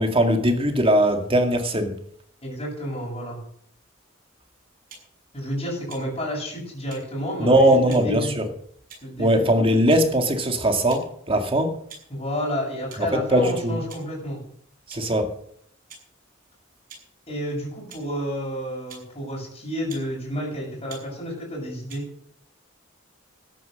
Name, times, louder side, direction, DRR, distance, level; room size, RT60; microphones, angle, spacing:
voice 1, 0.0-2.0 7.4-8.4 9.2-11.8 13.0-13.8 14.9-15.3, right 1 dB, 30° right, 2.2 m, -20 dB
voice 2, 2.4-3.4 5.3-8.3 9.0-9.5 12.1-14.4 17.3-22.0, equal, 30° left, 7.3 m, -30 dB
sound 1, 4.9-5.1 5.9-6.1 6.9-7.0 7.9-8.1 8.9-9.2 9.9-10.0 10.9-11.1 11.9-12.1 12.9-13.0 13.9-14.1 14.9-15.1 15.9-16.0 16.9-17.0 17.9-18.0 18.9-19.1 19.9-20.1 20.9-21.0 21.9-22.0, right 4 dB, 45° right, 6.7 m, -44 dB
13.5 x 10.5 x 6.6 m
head